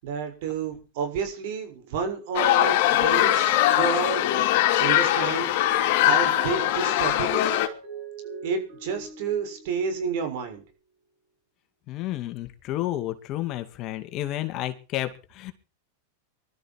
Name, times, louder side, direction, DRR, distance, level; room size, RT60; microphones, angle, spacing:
voice 1, 0.0-4.2 4.5-5.5 6.0-7.6 8.4-10.6, right 6 dB, 60° right, 7 dB, 6.6 m, -30 dB
sound 1, 2.3-7.7, left 13 dB, 55° left, 3.1 m, -21 dB
Mallet percussion, 3.9-4.8 5.2-10.6, right 6 dB, 45° right, 6.9 m, -43 dB
voice 2, 11.9-15.5, left 14 dB, 40° left, 8 dB, 2.3 m, -31 dB
21.0 x 13.0 x 4.7 m, 0.35 s
supercardioid pair, 130°, 0 cm